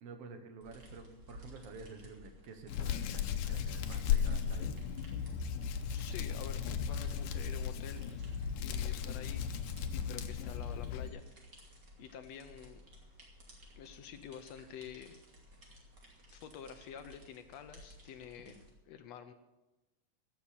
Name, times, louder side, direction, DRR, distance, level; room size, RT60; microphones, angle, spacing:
voice 1, 0.0-4.7 8.9-9.0 18.4-18.6, right 4 dB, 55° right, 7 dB, 2.0 m, -51 dB
sound 1, 0.6-18.7, equal, 35° right, 2.8 m, -54 dB
Hands, 2.7-11.1, left 8 dB, 90° left, 2.5 m, -36 dB
voice 2, 5.9-8.0 8.6-9.5 9.9-11.4 12.0-12.8 13.8-15.2 16.3-19.3, left 8 dB, 75° left, 9 dB, 1.6 m, -49 dB
16.0 x 7.2 x 8.2 m, 1.1 s
omnidirectional pair, 3.8 m